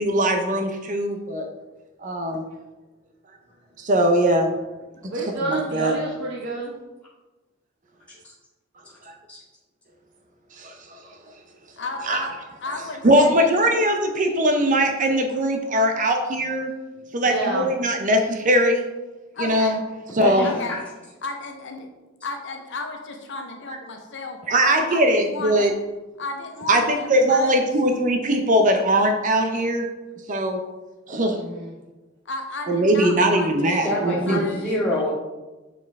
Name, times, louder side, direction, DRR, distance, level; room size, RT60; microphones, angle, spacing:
voice 1, 0.0-1.5 2.0-2.4 3.8-4.5 5.5-6.0 9.1-9.2 10.6-11.0 12.1-12.3 13.0-16.7 17.1-18.8 19.4-19.8 20.2-20.4 24.5-25.7 26.7-29.9 30.3-30.6 31.1-31.4 32.7-34.4, right 1 dB, 40° right, 4 dB, 0.6 m, -20 dB
voice 2, 5.0-6.7 17.2-17.7 20.4-20.7 31.2-31.8, right 2 dB, 65° right, -5 dB, 1.1 m, -29 dB
voice 3, 11.8-12.3 12.6-13.7 19.3-19.8 20.4-20.8 21.2-21.9 22.2-25.7 26.2-27.7 32.2-34.7, left 3 dB, 60° left, 3 dB, 0.9 m, -34 dB
voice 4, 20.2-20.8 33.6-35.1, left 1 dB, 5° left, -10 dB, 2.1 m, -26 dB
7.0 x 4.6 x 3.5 m, 1.1 s
head